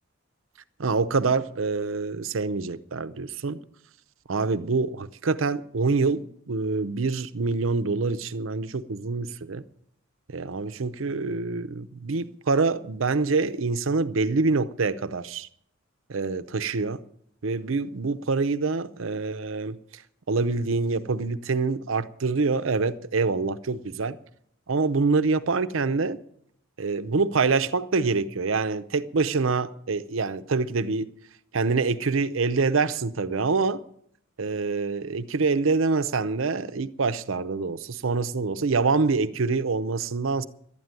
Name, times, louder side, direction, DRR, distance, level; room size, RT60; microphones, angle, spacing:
voice 1, 0.8-3.6 4.3-9.6 10.3-15.5 16.1-17.0 17.4-20.0 20.3-24.2 24.7-26.2 26.8-31.1 31.5-33.8 34.4-40.5, right 4 dB, 75° right, 0.7 m, -26 dB
12.0 x 9.5 x 9.0 m
head